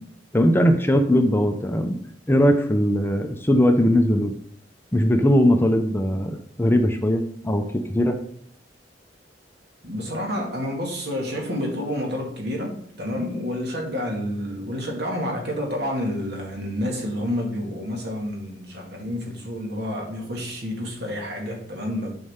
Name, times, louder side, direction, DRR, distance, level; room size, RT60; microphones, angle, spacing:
voice 1, 0.3-2.0 2.3-4.3 4.9-7.6 7.9-8.2, equal, 15° left, 5 dB, 0.7 m, -19 dB
voice 2, 9.8-22.1, left 1 dB, 65° right, 1 dB, 2.2 m, -29 dB
9.8 x 5.4 x 3.7 m, 0.63 s
head